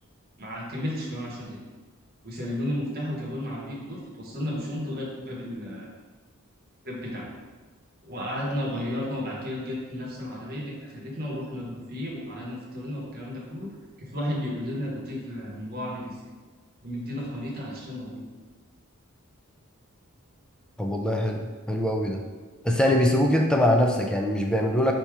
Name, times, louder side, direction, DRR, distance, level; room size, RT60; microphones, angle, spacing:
voice 1, 0.4-1.6 2.2-5.9 6.8-7.3 8.0-13.7 14.0-16.2 16.8-18.2, left 1 dB, 45° right, -3 dB, 1.0 m, -33 dB
voice 2, 20.8-22.2 22.6-24.9, left 1 dB, 5° left, 1 dB, 0.3 m, -23 dB
4.5 x 2.8 x 3.5 m, 1.3 s
head